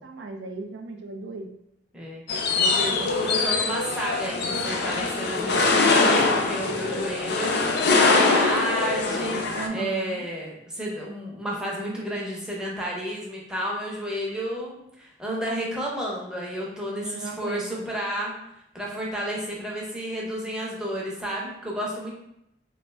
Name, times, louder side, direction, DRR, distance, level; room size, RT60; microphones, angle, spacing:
voice 1, 0.0-1.5 9.5-10.3 17.0-17.8, right 3 dB, 85° right, 3 dB, 0.4 m, -36 dB
sound 1, 2.3-9.7, left 3 dB, 65° left, 0.4 m, -23 dB
voice 2, 2.6-18.3 18.7-22.1, equal, 5° right, -4 dB, 0.6 m, -31 dB
2.4 x 2.2 x 3.2 m, 0.79 s
head